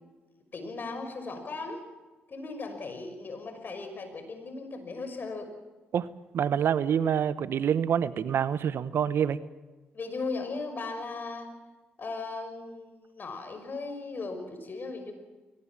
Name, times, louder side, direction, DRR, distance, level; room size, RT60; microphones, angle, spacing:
voice 1, 0.5-1.8 2.3-5.5 9.9-11.5 12.0-15.1, left 3 dB, 50° left, 7 dB, 5.8 m, -37 dB
voice 2, 6.3-9.4, right 8 dB, 65° right, 16 dB, 0.9 m, -26 dB
22.0 x 19.0 x 7.3 m, 1.2 s
supercardioid pair, 55°, 4 cm